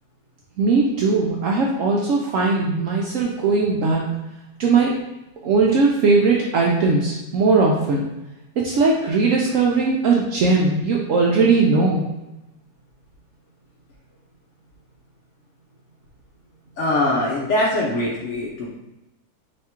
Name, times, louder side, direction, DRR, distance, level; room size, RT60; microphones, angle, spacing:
voice 1, 0.6-4.0 4.6-4.9 5.4-8.0 8.6-12.0, right 4 dB, 70° right, -2 dB, 0.8 m, -19 dB
voice 2, 16.8-18.7, left 1 dB, 60° left, -3 dB, 0.8 m, -22 dB
3.4 x 2.8 x 4.3 m, 0.96 s
omnidirectional pair, 1.6 m